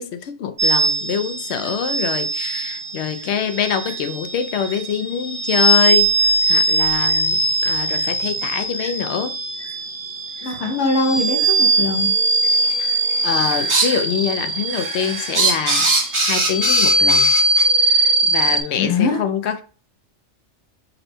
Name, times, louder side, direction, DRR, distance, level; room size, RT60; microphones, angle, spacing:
voice 1, 0.0-9.3 12.8-17.3 17.8-19.6, left 7 dB, 70° left, 0.8 m, -25 dB
sound 1, 0.6-18.6, right 2 dB, 50° right, 1.1 m, -20 dB
sound 2, 1.6-1.7 2.5-2.6 3.2-3.3 3.8-3.9 4.6-4.8 5.7-5.8 6.4-6.6 7.1-7.2 7.9-8.1 8.8-8.9 9.6-9.7 10.4-10.5 11.4-11.5 12.4-12.8 13.1-14.0 14.4-17.6, right 3 dB, 30° right, 0.7 m, -23 dB
voice 2, 10.4-12.1 18.8-19.2, left 3 dB, 85° left, 1.3 m, -21 dB
5.2 x 2.2 x 4.3 m
omnidirectional pair, 1.2 m